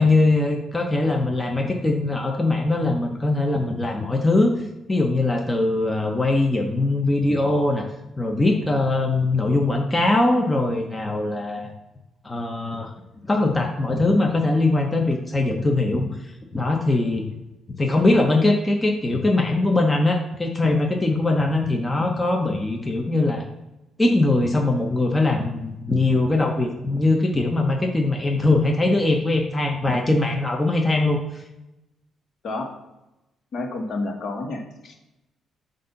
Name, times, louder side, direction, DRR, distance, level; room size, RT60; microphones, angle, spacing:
voice 1, 0.0-4.5 4.9-7.9 8.2-11.7 12.2-12.9 13.3-17.3 17.8-23.5 24.0-31.4, left 2 dB, 20° left, 2 dB, 0.7 m, -21 dB
voice 2, 33.5-34.9, left 2 dB, 60° left, 2 dB, 1.3 m, -30 dB
7.6 x 2.6 x 5.6 m, 0.95 s
cardioid pair, 90°, 0 cm